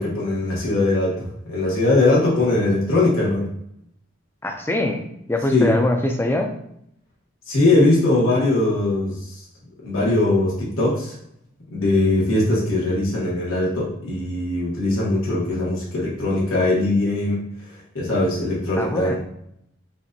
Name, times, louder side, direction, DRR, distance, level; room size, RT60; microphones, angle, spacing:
voice 1, 0.0-3.5 5.5-5.7 7.5-9.1 9.8-11.1 11.7-17.5 17.9-19.2, left 2 dB, 85° left, -5 dB, 1.3 m, -20 dB
voice 2, 4.4-5.0 5.3-6.5 18.8-19.2, left 1 dB, 10° left, 3 dB, 0.4 m, -23 dB
5.8 x 2.5 x 2.7 m, 0.75 s
head